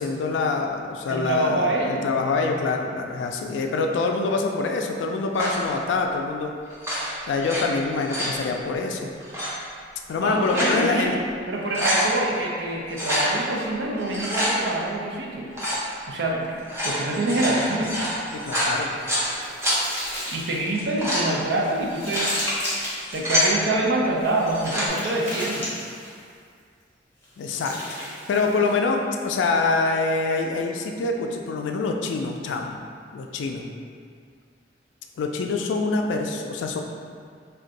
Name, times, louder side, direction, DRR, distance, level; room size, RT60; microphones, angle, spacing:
voice 1, 0.0-6.5 7.3-9.1 10.1-11.1 18.3-18.9 27.4-27.8 28.0-32.8 33.1-33.7 35.2-36.8, left 3 dB, 85° left, 3 dB, 0.3 m, -25 dB
voice 2, 1.1-2.1 10.2-11.1 11.5-15.5 16.1-16.6 16.8-18.0 20.3-22.3 23.1-25.7, right 1 dB, 70° right, -2 dB, 0.5 m, -25 dB
sound 1, 5.3-5.7 6.7-7.6 7.9-8.4 9.2-9.5 10.2-10.8 11.2-11.3 11.6-12.1 12.9-13.3 14.0-14.5 15.5-15.8 16.6-19.3 19.6-19.8 20.6-21.3 21.9-22.3 22.9-23.5 24.4-24.9, equal, 15° right, 0.6 m, -26 dB
sound 2, 18.4-20.7 21.3-23.2 24.1-26.3 27.2-28.8, left 1 dB, 10° left, 0.8 m, -34 dB
2.5 x 2.2 x 3.9 m, 2.2 s
head